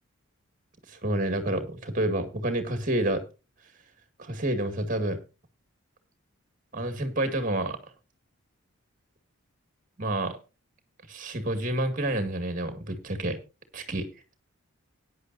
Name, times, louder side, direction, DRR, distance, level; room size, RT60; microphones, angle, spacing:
voice 1, 0.9-3.2 4.2-5.2 6.7-7.8 10.0-10.4 11.1-13.4 13.7-14.1, right 1 dB, 35° right, 8 dB, 2.0 m, -29 dB
16.5 x 10.0 x 2.6 m, 0.29 s
head